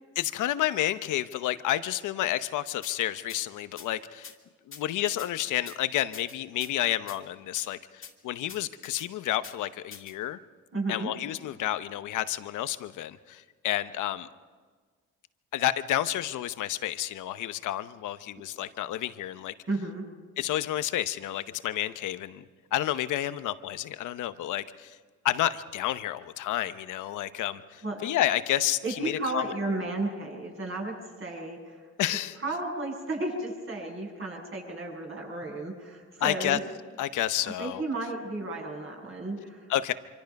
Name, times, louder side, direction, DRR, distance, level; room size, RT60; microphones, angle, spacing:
voice 1, 0.2-4.3 4.7-10.4 10.9-14.3 15.5-19.5 20.4-22.4 22.7-25.0 25.2-29.4 32.0-32.4 36.2-36.6 37.0-37.8 39.7-39.9, left 13 dB, 85° left, 12 dB, 0.9 m, -30 dB
sound 1, 2.8-2.9 3.3-3.4 3.8-3.9 4.2-4.3 4.7-5.3 5.7-5.8 6.1-6.7 7.1-7.2 7.5-7.7 8.0-8.1 8.5-9.1 9.4-9.5 9.9-10.1, left 6 dB, 45° left, 2.4 m, -44 dB
voice 2, 10.7-11.1 19.7-20.0 27.8-28.1 28.8-31.8 32.4-36.6 37.4-39.7, right 2 dB, 45° right, 0 dB, 7.6 m, -33 dB
25.5 x 25.0 x 5.4 m, 1.5 s
cardioid pair, 90°, 30 cm